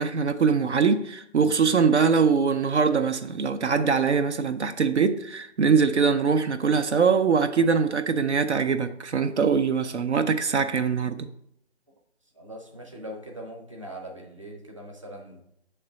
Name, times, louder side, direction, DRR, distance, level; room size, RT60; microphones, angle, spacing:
voice 1, 0.0-11.3, right 5 dB, 75° right, 0.6 m, -22 dB
voice 2, 12.3-15.4, equal, 30° right, 0.8 m, -41 dB
7.6 x 3.3 x 5.0 m
hypercardioid pair, 180°, 35 cm